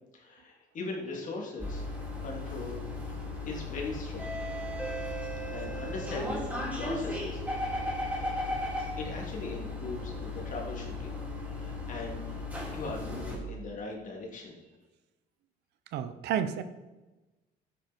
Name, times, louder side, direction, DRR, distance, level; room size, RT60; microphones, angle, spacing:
voice 1, 0.1-1.8 2.2-2.8 3.1-3.2 3.4-4.3 5.5-6.4 6.8-7.8 9.0-11.1 11.5-12.4 12.7-14.5, left 3 dB, 50° left, 0 dB, 3.2 m, -40 dB
sound 1, 1.6-13.4, left 2 dB, 10° right, 4.6 m, -36 dB
voice 2, 15.9-16.6, right 9 dB, 80° right, 12 dB, 0.8 m, -30 dB
12.0 x 9.6 x 4.6 m, 1.1 s
cardioid pair, 110°, 17 cm